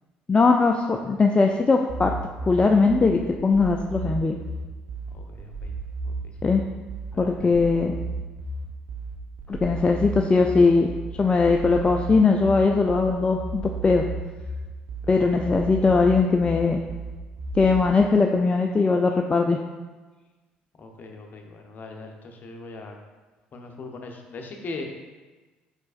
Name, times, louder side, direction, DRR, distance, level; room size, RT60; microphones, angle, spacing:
voice 1, 0.3-2.1 2.4-4.4 6.4-6.6 7.2-7.9 9.5-10.9 11.2-14.0 15.1-16.8 17.6-19.6, left 4 dB, 25° left, 2 dB, 0.3 m, -20 dB
sound 1, 1.9-17.9, right 2 dB, 55° right, 0.7 m, -34 dB
voice 2, 5.1-5.7 6.0-6.3 7.1-7.5 15.0-15.3 20.8-23.0 23.5-24.8, left 3 dB, 45° left, 3 dB, 0.7 m, -40 dB
5.0 x 4.4 x 2.4 m, 1.3 s
hypercardioid pair, 60°, 5 cm